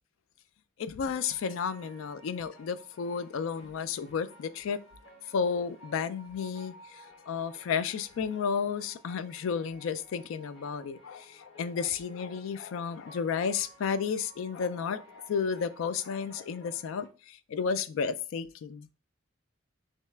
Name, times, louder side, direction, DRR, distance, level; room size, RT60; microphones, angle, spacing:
voice 1, 0.8-4.8 5.3-18.9, left 6 dB, 80° left, 0.3 m, -32 dB
sound 1, 1.1-17.1, equal, 60° left, 0.9 m, -55 dB
3.1 x 2.8 x 3.3 m
head